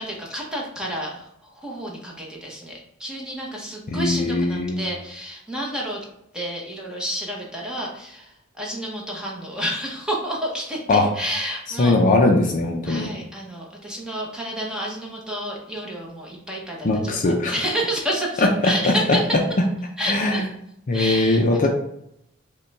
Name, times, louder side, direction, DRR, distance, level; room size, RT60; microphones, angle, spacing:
voice 1, 0.0-6.0 6.3-10.8 11.1-12.0 12.8-19.3 20.0-20.5 20.9-21.4, equal, 5° right, -3 dB, 0.9 m, -30 dB
voice 2, 3.9-4.9 10.9-11.1 11.8-13.1 16.8-17.6 18.4-19.4 20.1-20.4 20.9-21.7, left 2 dB, 40° left, 2 dB, 0.5 m, -20 dB
5.5 x 2.2 x 4.0 m, 0.77 s
head